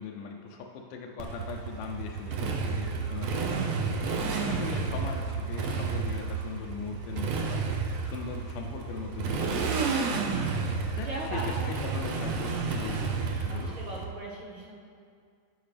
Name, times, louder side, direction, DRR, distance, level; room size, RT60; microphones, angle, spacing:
voice 1, 0.0-3.9 4.4-7.6 8.0-9.8 10.9-13.1 13.5-13.8, left 6 dB, 90° left, 1 dB, 2.2 m, -40 dB
Motorcycle, 1.2-14.0, right 4 dB, 70° right, 1.7 m, -31 dB
voice 2, 2.8-3.9 11.0-11.7 12.7-14.8, right 1 dB, 55° right, -5 dB, 1.8 m, -41 dB
16.0 x 5.7 x 3.4 m, 2.2 s
omnidirectional pair, 3.6 m